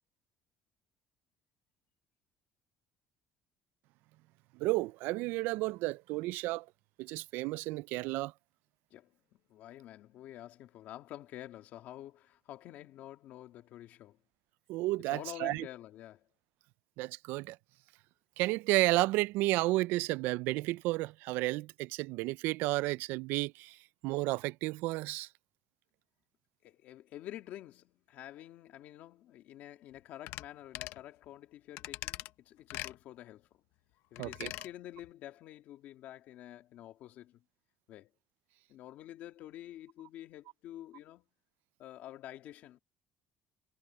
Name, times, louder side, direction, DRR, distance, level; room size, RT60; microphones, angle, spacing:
voice 1, 4.6-6.6 7.0-8.3 14.7-15.6 17.0-17.6 18.4-23.8 24.0-25.3 34.2-34.5, right 20 dB, 80° right, 0.3 m, -32 dB
voice 2, 8.9-14.2 15.0-16.3 26.6-33.5 34.1-37.4 37.9-38.1 38.7-41.3 41.8-42.8, left 13 dB, 55° left, 2.3 m, -49 dB
sound 1, 30.3-30.5 30.7-31.0 31.8-32.3 32.7-33.0 34.2-34.7 35.0-35.1, left 17 dB, 85° left, 0.8 m, -41 dB
cardioid pair, 180°, 3 cm